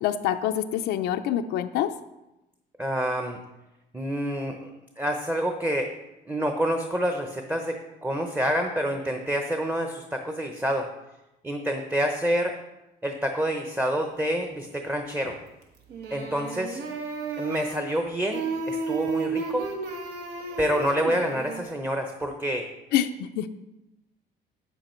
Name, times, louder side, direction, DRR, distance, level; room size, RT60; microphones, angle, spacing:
voice 1, 0.0-1.9 22.9-23.5, left 11 dB, 90° left, 7 dB, 0.5 m, -26 dB
voice 2, 2.8-3.4 3.9-4.7 5.0-5.9 6.3-10.9 11.4-12.6 13.0-15.4 16.1-16.8 17.4-19.7 20.6-22.7, equal, 10° right, 5 dB, 0.8 m, -27 dB
sound 1, 15.2-15.6 15.9-18.0 18.3-21.6, right 4 dB, 70° right, 1.6 m, -33 dB
8.5 x 8.1 x 4.4 m, 0.97 s
cardioid pair, 110°, 17 cm